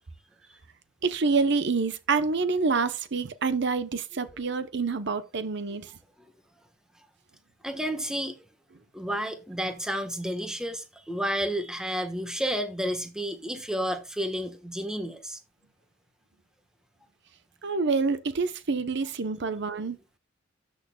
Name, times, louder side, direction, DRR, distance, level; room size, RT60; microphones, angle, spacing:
voice 1, 1.0-5.9 17.6-20.0, right 4 dB, 65° right, 0.8 m, -27 dB
voice 2, 7.6-8.4 8.9-15.4, equal, 5° right, 1.2 m, -31 dB
12.5 x 6.4 x 2.3 m
head